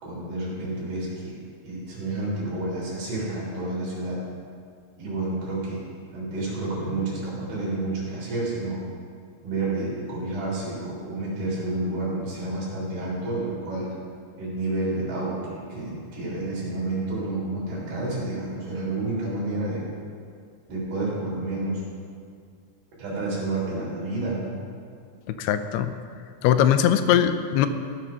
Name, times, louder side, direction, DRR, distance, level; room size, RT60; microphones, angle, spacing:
voice 1, 0.0-4.2 5.0-5.8 6.1-8.8 9.4-13.9 14.4-19.8 20.7-21.8 23.0-24.6, right 2 dB, 70° right, -6 dB, 5.3 m, -30 dB
voice 2, 25.4-25.9 26.4-27.7, left 10 dB, 90° left, 10 dB, 2.6 m, -20 dB
16.5 x 6.2 x 5.7 m, 2.2 s
omnidirectional pair, 4.5 m